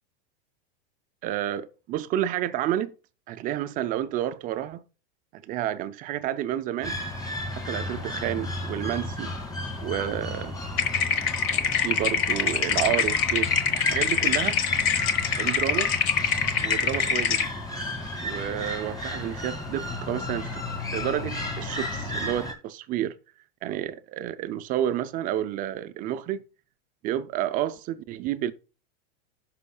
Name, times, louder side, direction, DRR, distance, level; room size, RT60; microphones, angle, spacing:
voice 1, 1.2-2.9 3.3-4.8 5.3-7.0 7.5-9.3 9.8-10.6 11.6-14.6 15.4-15.9 16.6-17.5 18.2-20.6 20.9-23.1 23.6-26.4 27.0-28.5, right 12 dB, 30° right, 0.4 m, -30 dB
sound 1, 6.8-22.5, left 1 dB, 10° left, 2.1 m, -34 dB
Teeth chattering, 10.8-17.5, left 6 dB, 45° left, 1.2 m, -24 dB
15.0 x 5.7 x 2.3 m
supercardioid pair, 145°, 30 cm